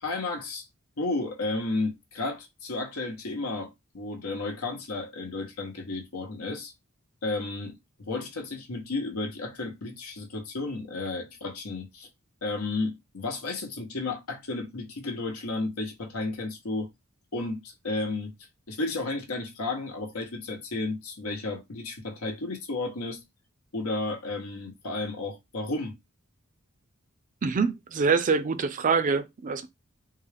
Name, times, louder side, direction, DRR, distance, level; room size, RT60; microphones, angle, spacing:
voice 1, 0.0-0.6 1.0-3.7 3.9-6.7 7.2-7.7 8.1-12.1 12.4-16.9 17.3-18.3 18.7-23.2 23.7-25.9, left 3 dB, 85° left, 1.0 m, -32 dB
voice 2, 27.4-29.7, right 5 dB, 35° right, 0.4 m, -25 dB
3.7 x 2.4 x 3.3 m
head